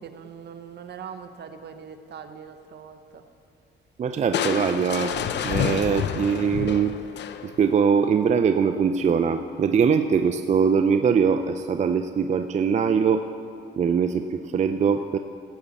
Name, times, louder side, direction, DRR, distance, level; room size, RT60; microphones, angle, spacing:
voice 1, 0.0-3.2, right 7 dB, 55° right, 8 dB, 0.8 m, -41 dB
voice 2, 4.0-6.9 7.4-13.3 13.8-15.2, right 6 dB, 35° right, 8 dB, 0.4 m, -22 dB
Crushing, 4.3-7.7, left 8 dB, 60° left, 0.6 m, -28 dB
16.5 x 8.2 x 4.1 m, 2.5 s
cardioid pair, 90°, 20 cm